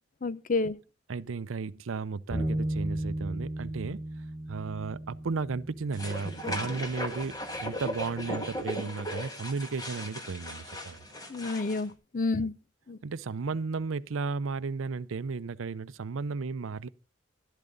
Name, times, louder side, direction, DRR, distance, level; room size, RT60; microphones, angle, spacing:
voice 1, 0.2-0.8 11.3-12.5 12.9-13.0, left 3 dB, 40° left, 0.5 m, -29 dB
voice 2, 1.1-4.0 4.5-11.0 12.3-12.5 13.0-16.9, right 4 dB, 90° right, 0.5 m, -34 dB
Bass guitar, 2.3-8.6, right 1 dB, 5° left, 4.3 m, -36 dB
sound 1, 5.9-11.8, left 1 dB, 20° left, 1.4 m, -37 dB
12.0 x 11.5 x 3.9 m
head